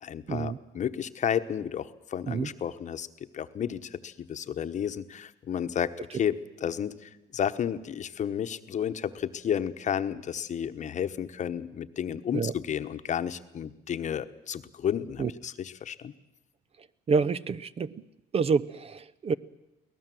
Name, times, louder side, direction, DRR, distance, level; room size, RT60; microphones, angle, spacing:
voice 1, 0.0-3.1 3.3-16.1, left 9 dB, 45° left, 10 dB, 1.1 m, -32 dB
voice 2, 17.1-17.9 18.3-19.3, right 5 dB, 35° right, 18 dB, 0.7 m, -27 dB
23.0 x 18.0 x 7.7 m, 0.91 s
cardioid pair, 110°, 17 cm